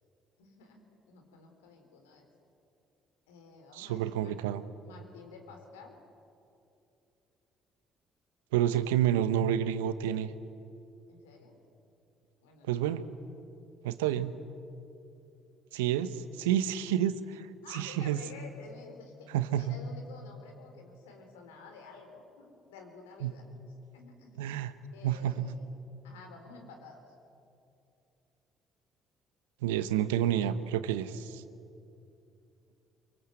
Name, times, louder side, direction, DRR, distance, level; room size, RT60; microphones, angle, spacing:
voice 1, 0.4-2.3 3.3-4.4 4.8-6.0 11.1-11.6 12.4-13.0 17.6-23.6 23.9-24.4 24.9-25.7 26.0-27.1, left 4 dB, 85° left, 4 dB, 3.8 m, -51 dB
voice 2, 3.7-4.6 8.5-10.3 12.7-13.0 13.8-14.3 15.7-18.2 19.3-19.7 23.2-23.3 24.4-24.7 25.0-25.5 29.6-31.4, right 11 dB, 80° right, 12 dB, 1.0 m, -29 dB
25.0 x 24.5 x 7.9 m, 2.7 s
hypercardioid pair, 55°, 0 cm